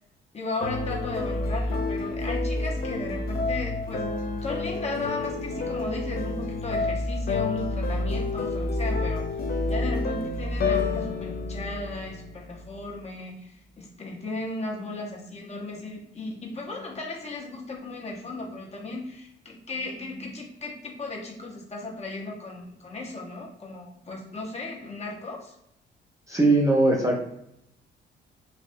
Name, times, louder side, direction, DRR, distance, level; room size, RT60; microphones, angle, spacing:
voice 1, 0.3-4.0 4.4-9.2 9.7-25.5, left 2 dB, 35° left, -2 dB, 1.0 m, -35 dB
sound 1, 0.6-12.7, left 3 dB, 50° left, 0.5 m, -29 dB
voice 2, 26.3-27.2, right 2 dB, 15° right, -1 dB, 0.7 m, -20 dB
3.2 x 2.5 x 2.6 m, 0.78 s
cardioid pair, 90°, 20 cm